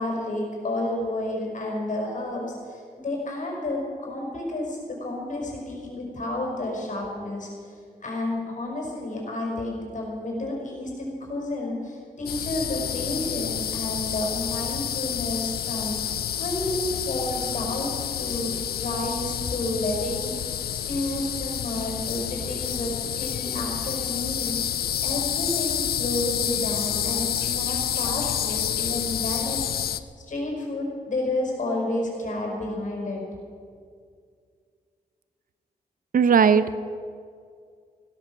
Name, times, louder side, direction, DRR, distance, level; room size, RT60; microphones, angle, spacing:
voice 1, 0.0-7.5 8.0-30.0 30.3-33.2, left 1 dB, 55° left, -1 dB, 5.4 m, -31 dB
sound 1, 12.3-30.0, left 10 dB, 80° left, 0.6 m, -29 dB
voice 2, 36.1-36.8, right 6 dB, 65° right, 13 dB, 0.7 m, -18 dB
16.0 x 13.5 x 6.3 m, 2.2 s
cardioid pair, 90°, 16 cm